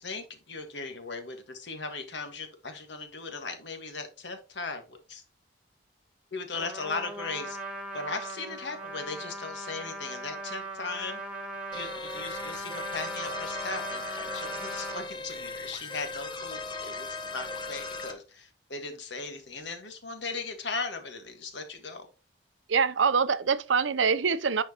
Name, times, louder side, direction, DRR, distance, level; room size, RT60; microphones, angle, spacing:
voice 1, 0.0-5.2 6.3-7.6 7.9-11.2 11.7-22.1, left 4 dB, 70° left, 1.5 m, -38 dB
Trumpet, 6.5-15.1, right 2 dB, 5° right, 1.3 m, -39 dB
sound 1, 11.7-18.1, left 3 dB, 25° left, 0.9 m, -38 dB
voice 2, 22.7-24.6, right 5 dB, 85° right, 0.6 m, -24 dB
10.0 x 4.5 x 2.9 m
head